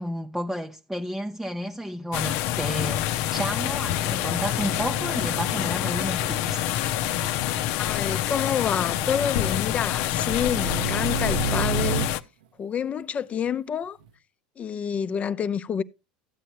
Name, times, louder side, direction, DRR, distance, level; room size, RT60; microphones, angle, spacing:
voice 1, 0.0-6.6, equal, 5° right, 0.7 m, -32 dB
sound 1, 2.1-12.2, left 12 dB, 60° left, 0.7 m, -27 dB
Thunder / Rain, 4.3-14.2, right 6 dB, 85° right, 1.3 m, -50 dB
sound 2, 4.9-7.7 10.1-12.1, right 7 dB, 65° right, 0.8 m, -32 dB
voice 2, 7.8-12.1 12.6-14.0 14.6-15.8, left 7 dB, 30° left, 0.7 m, -28 dB
13.5 x 8.5 x 3.0 m
hypercardioid pair, 95°, 4 cm